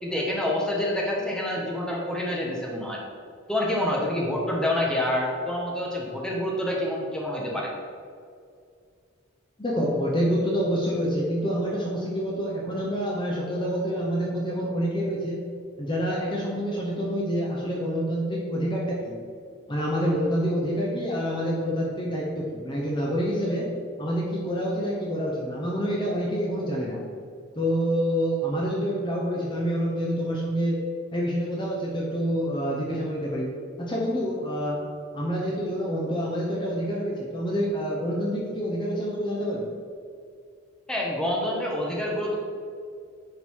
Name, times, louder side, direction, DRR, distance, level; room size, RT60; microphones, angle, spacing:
voice 1, 0.0-3.0 3.5-7.7 40.9-42.4, left 1 dB, 5° left, -3 dB, 1.1 m, -27 dB
voice 2, 9.6-15.4 15.8-19.2 19.7-23.7 24.0-27.0 27.5-30.8 31.1-33.5 33.8-34.8 35.1-39.7, equal, 25° left, -3 dB, 0.9 m, -27 dB
9.7 x 4.0 x 4.6 m, 2.3 s
head